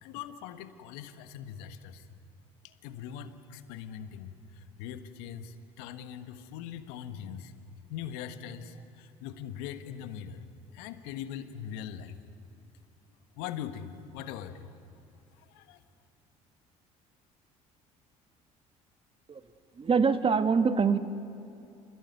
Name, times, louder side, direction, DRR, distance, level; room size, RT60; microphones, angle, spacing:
voice 1, 0.0-2.1 2.6-7.5 7.9-10.5 10.7-12.2 13.4-14.7 15.4-15.8, left 9 dB, 75° left, 10 dB, 1.5 m, -41 dB
voice 2, 19.7-21.0, right 5 dB, 30° right, 10 dB, 1.6 m, -24 dB
28.5 x 17.5 x 9.5 m, 2.7 s
hypercardioid pair, 65°, 17 cm